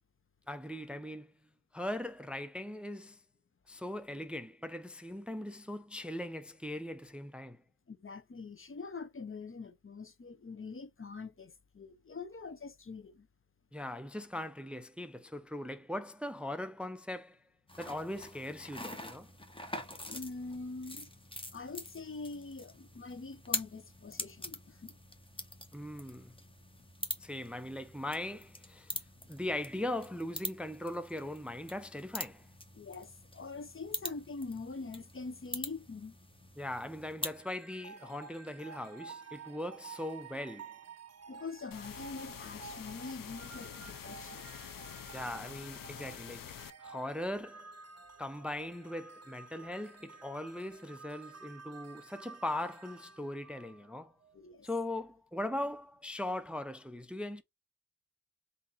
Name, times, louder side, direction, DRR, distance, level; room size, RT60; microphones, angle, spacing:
voice 1, 0.5-1.3 1.7-3.2 3.7-7.6 13.7-17.4 17.8-19.3 25.7-26.3 27.2-29.0 29.3-32.5 36.6-40.8 45.1-46.5 46.8-47.7 48.2-54.1 54.6-57.4, left 1 dB, 5° right, 0.5 m, -40 dB
voice 2, 7.9-13.3 20.1-21.1 21.5-24.9 32.7-36.2 41.3-44.5 54.3-54.7, left 4 dB, 40° left, 0.7 m, -44 dB
sound 1, 17.7-37.4, left 1 dB, 15° left, 1.1 m, -44 dB
sound 2, 37.2-54.4, right 5 dB, 50° right, 0.7 m, -52 dB
sound 3, 41.7-46.7, left 9 dB, 80° left, 0.6 m, -47 dB
3.7 x 2.7 x 4.1 m
cardioid pair, 45°, 33 cm